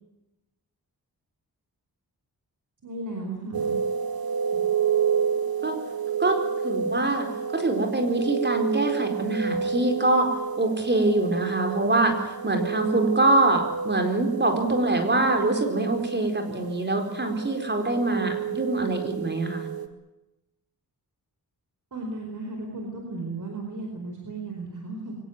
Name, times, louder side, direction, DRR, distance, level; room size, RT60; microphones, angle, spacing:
voice 1, 2.8-3.8 21.9-25.2, right 2 dB, 50° right, 2 dB, 4.8 m, -35 dB
sound 1, 3.5-19.9, right 7 dB, 65° right, 2.5 m, -30 dB
voice 2, 6.2-7.3 7.5-19.7, right 2 dB, 25° right, 4 dB, 4.4 m, -24 dB
24.0 x 18.5 x 9.5 m, 0.96 s
wide cardioid pair, 135°, 38 cm